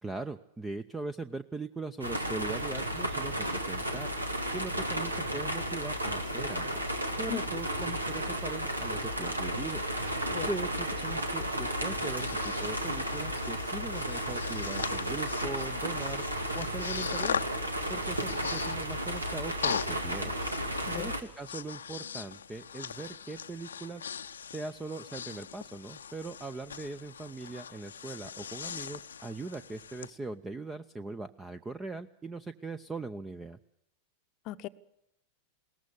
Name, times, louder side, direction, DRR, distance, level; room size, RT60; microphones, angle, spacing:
voice 1, 0.0-4.1 4.5-6.8 7.2-9.8 10.4-16.2 16.5-17.4 17.9-20.3 21.0-24.0 24.5-33.6, right 3 dB, 10° right, 0.7 m, -40 dB
sound 1, 2.0-21.2, right 1 dB, 80° right, 2.0 m, -33 dB
voice 2, 7.3-7.4 10.3-10.5 20.9-21.1 34.5-34.7, left 15 dB, 40° left, 0.8 m, -37 dB
Breathing, 11.4-30.1, left 7 dB, 70° left, 0.7 m, -40 dB
21.0 x 18.5 x 6.9 m
figure-of-eight pair, 90°, 0 cm